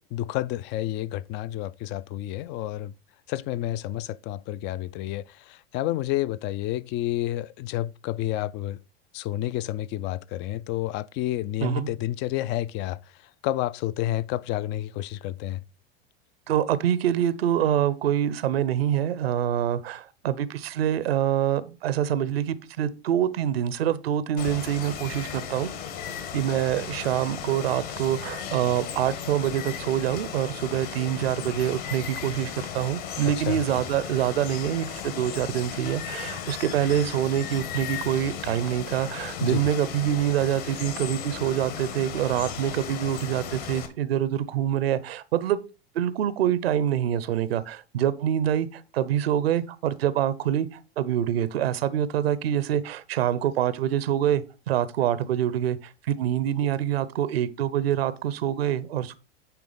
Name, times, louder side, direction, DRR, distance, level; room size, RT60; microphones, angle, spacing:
voice 1, 0.1-2.9 3.3-8.8 9.1-13.0 13.4-15.6 33.5-33.6 39.4-39.6, left 14 dB, 35° left, 0.4 m, -30 dB
voice 2, 11.6-11.9 16.5-25.7 26.3-45.6 45.9-59.1, right 10 dB, 70° right, 0.8 m, -26 dB
Water, 24.4-43.9, left 8 dB, 55° left, 1.7 m, -36 dB
9.3 x 3.6 x 5.1 m
hypercardioid pair, 90°, 31 cm